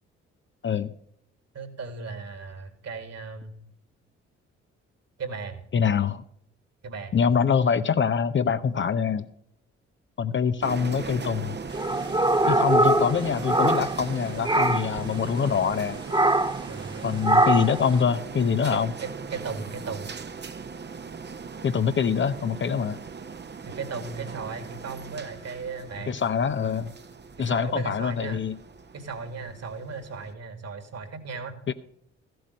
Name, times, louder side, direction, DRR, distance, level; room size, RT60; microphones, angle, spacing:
voice 1, 1.5-3.6 5.2-5.6 6.8-7.1 15.4-15.6 16.7-17.2 18.7-20.1 23.7-26.2 27.4-28.4 28.9-31.6, right 4 dB, 50° right, 9 dB, 2.3 m, -36 dB
voice 2, 5.7-6.2 7.1-9.3 10.2-11.6 12.5-16.0 17.0-18.9 21.6-23.0 26.1-26.9 27.4-28.6 31.7-31.8, left 6 dB, 35° left, 11 dB, 0.7 m, -24 dB
sound 1, 10.6-30.3, right 5 dB, 30° right, 1.0 m, -38 dB
sound 2, 11.7-14.2 14.4-15.0 16.1-16.7 17.2-17.8, right 1 dB, 15° right, 1.5 m, -22 dB
14.5 x 7.8 x 5.3 m, 0.73 s
hypercardioid pair, 40°, 33 cm